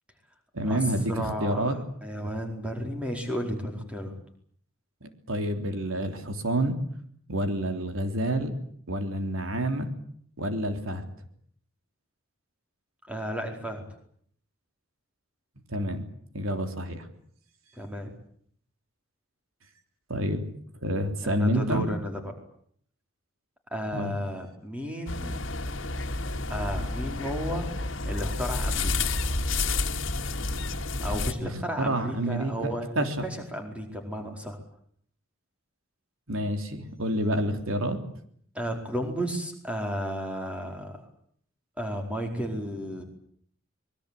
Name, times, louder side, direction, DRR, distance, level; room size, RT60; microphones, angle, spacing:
voice 1, 0.5-1.8 5.0-6.8 7.3-8.5 8.9-9.9 10.4-11.0 15.7-16.0 16.3-17.1 20.1-20.5 20.8-21.9 23.9-24.2 31.4-33.3 36.3-38.0, right 1 dB, 80° right, 6 dB, 3.4 m, -28 dB
voice 2, 1.1-1.7 2.0-4.1 13.1-13.8 17.8-18.1 21.2-22.2 23.7-25.5 26.5-27.7 28.0-29.2 31.0-34.6 38.5-41.0 41.8-43.0, equal, 5° right, 2 dB, 4.6 m, -33 dB
sound 1, 25.1-31.3, left 3 dB, 65° left, 2.2 m, -30 dB
25.0 x 22.0 x 8.5 m, 0.65 s
head